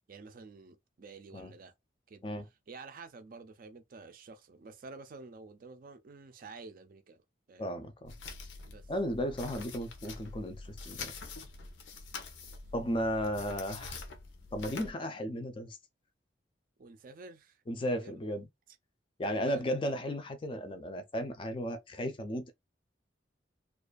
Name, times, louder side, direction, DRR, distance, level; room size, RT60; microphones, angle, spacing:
voice 1, 0.1-1.7 2.1-2.2 2.7-7.2 7.5-7.8 8.7-8.9 12.5-12.6 16.8-17.6 18.0-18.1 19.2-19.6, right 3 dB, 50° right, 0.4 m, -50 dB
voice 2, 7.6-8.1 8.9-11.1 12.7-14.0 14.5-15.8 17.7-18.5 19.2-22.5, equal, 30° left, 0.4 m, -35 dB
sound 1, 8.1-14.9, left 4 dB, 90° left, 0.6 m, -45 dB
2.4 x 2.3 x 2.3 m
head